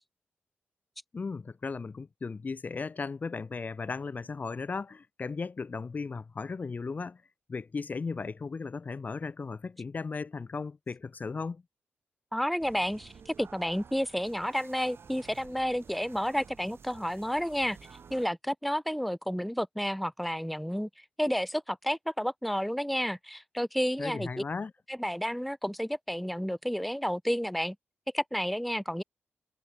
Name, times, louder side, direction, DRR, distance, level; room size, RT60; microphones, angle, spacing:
voice 1, 1.1-7.2 7.5-11.6 24.0-24.7, left 4 dB, 40° left, 0.9 m, -36 dB
voice 2, 12.3-17.8 18.1-24.3 24.9-27.7 28.1-29.0, equal, ahead, 1.1 m, -31 dB
sound 1, 12.6-18.3, right 6 dB, 60° right, 7.3 m, -52 dB
cardioid pair, 90°, 5 cm